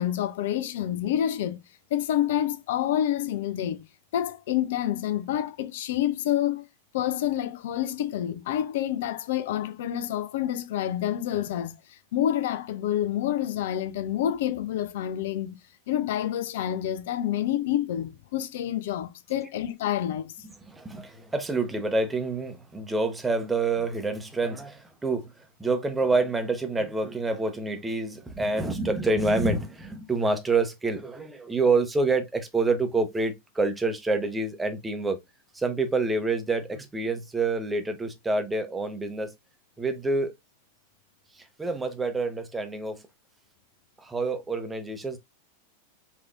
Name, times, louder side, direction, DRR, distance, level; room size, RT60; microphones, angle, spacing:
voice 1, 0.0-1.6 1.9-3.8 4.1-6.7 6.9-15.6 15.9-20.4, left 11 dB, 55° left, 0.3 m, -28 dB
voice 2, 20.7-25.3 25.6-35.2 35.5-39.3 39.8-40.3 41.4-43.0 44.0-45.2, right 3 dB, 10° right, 0.8 m, -27 dB
4.6 x 2.7 x 2.5 m
figure-of-eight pair, 90°, 0 cm